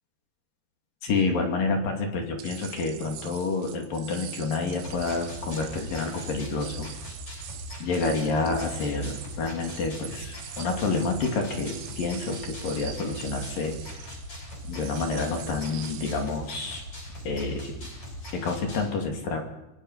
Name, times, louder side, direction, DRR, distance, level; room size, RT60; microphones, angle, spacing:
voice 1, 1.0-6.9 7.8-13.8 14.7-16.8 17.2-17.9 18.3-19.4, left 3 dB, 50° left, 3 dB, 3.8 m, -28 dB
sound 1, 2.4-16.4, right 11 dB, 80° right, 3.9 m, -44 dB
sound 2, 4.8-18.9, equal, 25° left, 8.5 m, -40 dB
26.0 x 23.0 x 5.7 m, 0.97 s
omnidirectional pair, 5.8 m